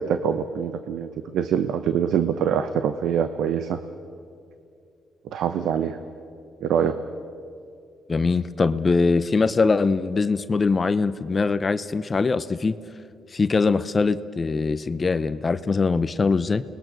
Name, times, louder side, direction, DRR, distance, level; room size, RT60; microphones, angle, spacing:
voice 1, 0.0-3.8 5.3-6.0 6.6-7.0, right 8 dB, 75° right, 10 dB, 0.9 m, -24 dB
voice 2, 8.1-12.8 13.3-16.6, left 4 dB, 30° left, 13 dB, 0.8 m, -22 dB
29.0 x 20.5 x 6.3 m, 2.5 s
cardioid pair, 90°, 0 cm